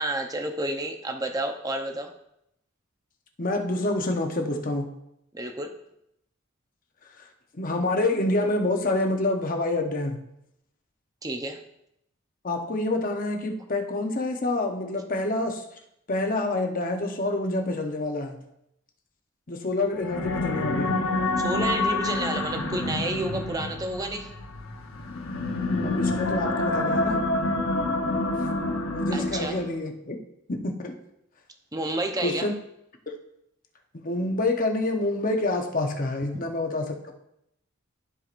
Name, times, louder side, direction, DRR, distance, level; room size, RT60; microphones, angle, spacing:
voice 1, 0.0-2.1 5.3-5.7 11.2-11.6 21.4-24.3 29.1-29.6 31.7-32.5 36.3-36.4, right 2 dB, 20° right, 4 dB, 0.7 m, -30 dB
voice 2, 3.4-4.9 7.5-10.2 12.4-15.6 16.1-18.4 19.5-21.0 25.8-27.2 28.9-30.2 30.5-30.9 32.2-32.5 34.0-37.1, left 2 dB, 40° left, 4 dB, 0.9 m, -27 dB
sound 1, 19.9-29.8, left 2 dB, 80° left, 1.0 m, -27 dB
13.5 x 4.7 x 2.5 m, 0.80 s
head